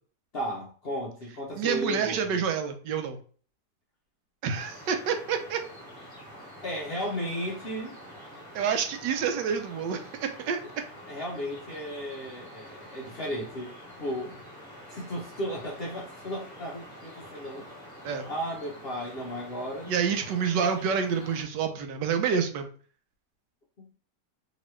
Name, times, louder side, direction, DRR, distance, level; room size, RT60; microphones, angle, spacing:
voice 1, 0.3-2.4 6.6-8.0 11.1-14.4 14.9-17.7 18.3-20.1 23.8-23.9, equal, 60° left, 0.6 m, -35 dB
voice 2, 1.6-3.2 4.4-5.6 8.5-10.6 18.0-18.2 19.9-22.7, right 6 dB, 85° right, 1.3 m, -28 dB
sound 1, 4.5-21.4, equal, 15° left, 1.0 m, -47 dB
3.0 x 2.9 x 3.1 m
omnidirectional pair, 1.9 m